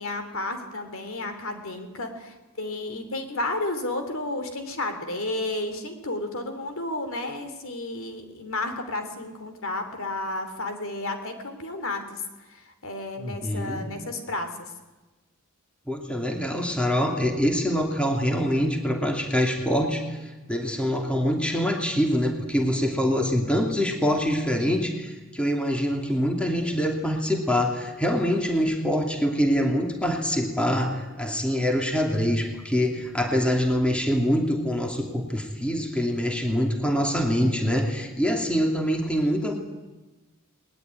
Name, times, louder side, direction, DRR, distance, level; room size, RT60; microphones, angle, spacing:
voice 1, 0.0-12.2 12.5-14.7, left 2 dB, 65° left, 7 dB, 3.2 m, -32 dB
voice 2, 13.2-13.9 15.9-39.6, equal, 5° left, 2 dB, 2.7 m, -25 dB
20.0 x 20.0 x 9.7 m, 1.2 s
head